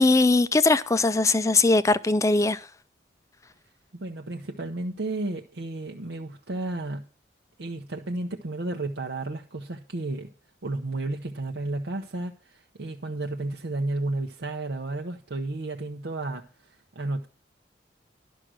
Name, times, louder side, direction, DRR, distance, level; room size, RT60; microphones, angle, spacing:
voice 1, 0.0-2.6, left 3 dB, 15° left, 0.4 m, -20 dB
voice 2, 3.9-7.1 7.6-10.3 10.6-17.3, right 2 dB, 70° right, 0.8 m, -32 dB
11.5 x 6.3 x 6.2 m
head